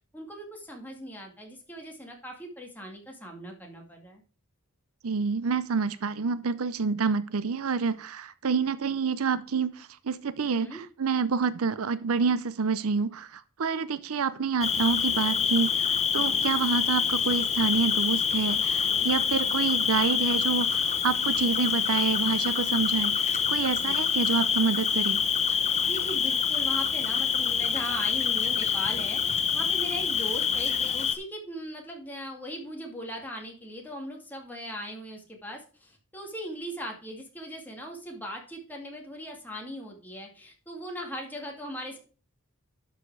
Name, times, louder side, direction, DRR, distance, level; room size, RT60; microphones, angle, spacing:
voice 1, 0.1-4.2 10.6-10.8 16.2-16.5 18.8-19.1 23.8-24.0 25.8-42.0, equal, 10° left, 2.2 m, -39 dB
voice 2, 5.0-25.2, right 5 dB, 70° right, 0.6 m, -28 dB
Cricket, 14.6-31.2, left 7 dB, 30° left, 0.9 m, -26 dB
11.5 x 5.0 x 4.7 m
head